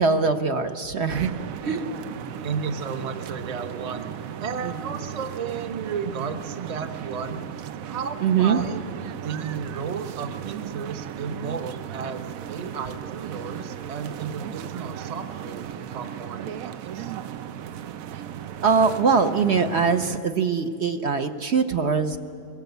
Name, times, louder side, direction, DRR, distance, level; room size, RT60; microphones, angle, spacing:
voice 1, 0.0-1.3 1.6-1.9 4.6-5.0 8.2-8.6 18.6-22.2, right 5 dB, 55° right, 7 dB, 1.1 m, -22 dB
sound 1, 1.1-20.2, right 9 dB, 90° right, 1.1 m, -36 dB
voice 2, 2.2-4.0 4.4-7.4 7.8-8.9 9.2-17.1, right 6 dB, 35° right, 8 dB, 0.9 m, -33 dB
22.5 x 19.5 x 8.1 m, 2.4 s
omnidirectional pair, 1.4 m